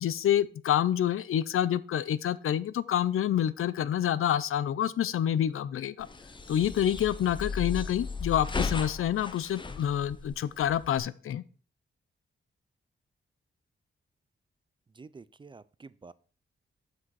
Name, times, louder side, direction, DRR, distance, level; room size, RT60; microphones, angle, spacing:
voice 1, 0.0-6.1 6.5-11.4, left 10 dB, 85° left, 17 dB, 0.5 m, -27 dB
sound 1, 6.0-11.0, left 4 dB, 20° left, 0.7 m, -36 dB
voice 2, 14.9-16.1, right 4 dB, 25° right, 17 dB, 0.3 m, -49 dB
7.5 x 6.0 x 4.7 m, 0.40 s
wide cardioid pair, 140°, 21 cm